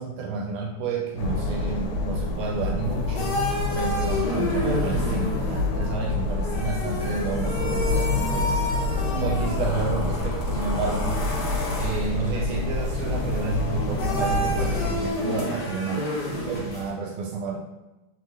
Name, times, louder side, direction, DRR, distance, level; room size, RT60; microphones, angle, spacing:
voice 1, 0.0-3.4 3.7-8.6 9.1-11.2 11.8-16.1 16.5-17.6, right 4 dB, 80° right, 0 dB, 1.4 m, -30 dB
sound 1, 1.2-15.1, left 3 dB, 85° left, 1.5 m, -27 dB
sound 2, 2.8-16.9, left 1 dB, 60° left, 1.3 m, -31 dB
3.7 x 3.4 x 3.0 m, 1.0 s
omnidirectional pair, 2.4 m